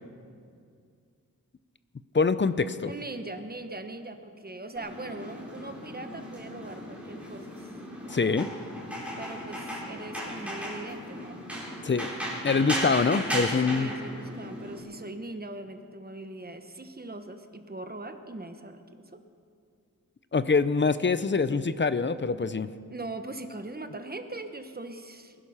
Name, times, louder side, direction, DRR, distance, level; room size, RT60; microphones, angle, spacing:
voice 1, 2.1-2.9 8.1-8.5 11.8-12.1 12.4-13.9 20.3-22.7, left 4 dB, 35° left, 14 dB, 0.6 m, -24 dB
voice 2, 2.8-7.7 8.0-8.4 9.2-11.4 13.6-19.2 22.9-25.3, right 2 dB, 25° right, 8 dB, 1.1 m, -41 dB
sound 1, 4.8-14.8, equal, 5° right, 3.9 m, -36 dB
21.0 x 11.5 x 5.7 m, 2.3 s
wide cardioid pair, 105°, 35 cm